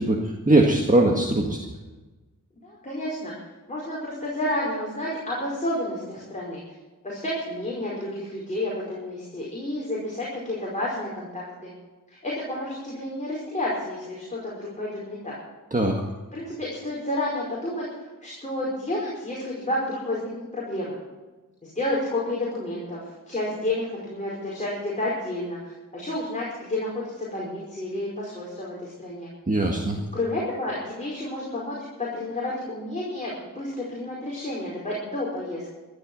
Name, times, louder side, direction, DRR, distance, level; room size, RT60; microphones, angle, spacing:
voice 1, 0.0-1.6 15.7-16.0 29.5-30.0, right 1 dB, 25° right, 1 dB, 1.7 m, -21 dB
voice 2, 2.6-3.3 3.7-6.6 7.0-11.7 12.1-15.4 16.3-21.0 21.6-29.3 30.1-35.7, left 1 dB, 20° left, -5 dB, 5.1 m, -30 dB
14.5 x 12.0 x 6.2 m, 1.2 s
wide cardioid pair, 110°, 33 cm